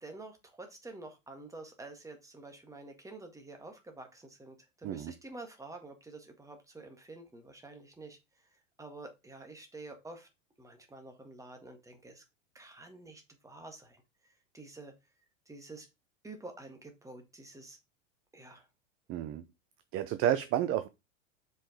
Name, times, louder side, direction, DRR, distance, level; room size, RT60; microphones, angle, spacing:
voice 1, 0.0-8.2 8.8-10.3 10.6-12.2 12.5-14.9 15.5-15.9 16.2-17.8 18.3-18.7, right 2 dB, 10° right, 1.9 m, -49 dB
voice 2, 19.1-19.4 19.9-20.9, right 11 dB, 35° right, 0.7 m, -30 dB
5.5 x 5.3 x 5.0 m
hypercardioid pair, 100°, 38 cm